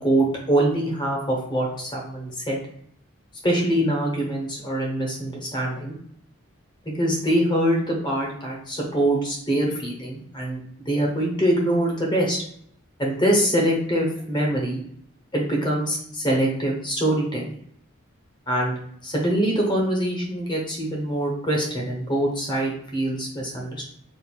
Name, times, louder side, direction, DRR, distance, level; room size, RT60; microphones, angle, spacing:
voice 1, 0.0-2.6 3.4-5.9 7.0-12.4 13.0-14.8 15.3-17.6 18.5-18.7 19.0-23.8, right 1 dB, 20° left, -2 dB, 0.9 m, -24 dB
4.4 x 2.5 x 2.3 m, 0.68 s
head